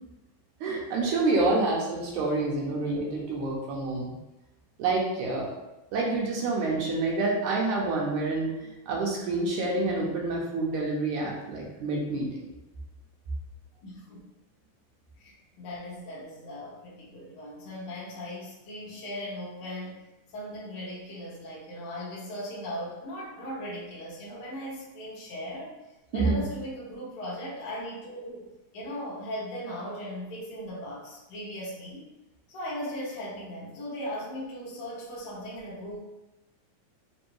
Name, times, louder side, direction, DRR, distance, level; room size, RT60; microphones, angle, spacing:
voice 1, 0.6-4.1 4.8-5.5 5.9-12.5 26.1-26.4, right 2 dB, 75° right, -2 dB, 2.1 m, -28 dB
voice 2, 13.8-14.2 15.2-20.0 20.3-25.8 26.1-28.5 28.7-32.1 32.5-36.0, equal, 60° left, -7 dB, 1.5 m, -38 dB
5.2 x 2.7 x 3.0 m, 0.99 s
omnidirectional pair, 3.6 m